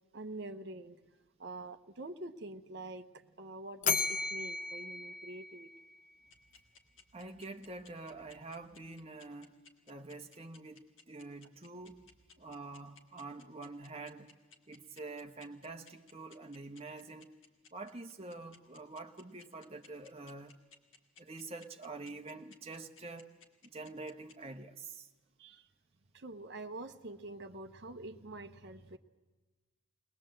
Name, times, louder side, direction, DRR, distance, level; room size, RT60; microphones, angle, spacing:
voice 1, 0.1-1.0 1.4-5.7 25.4-25.7 26.1-29.0, right 2 dB, 55° right, 0.9 m, -46 dB
Bell, 3.8-6.1, left 5 dB, 35° left, 0.7 m, -35 dB
sound 1, 6.3-24.3, left 5 dB, 70° left, 2.2 m, -58 dB
voice 2, 7.1-9.5 9.9-12.1 12.4-14.3 14.7-17.3 17.7-20.5 21.2-23.3 23.6-25.1, right 3 dB, 30° right, 1.1 m, -46 dB
21.0 x 20.0 x 7.6 m
head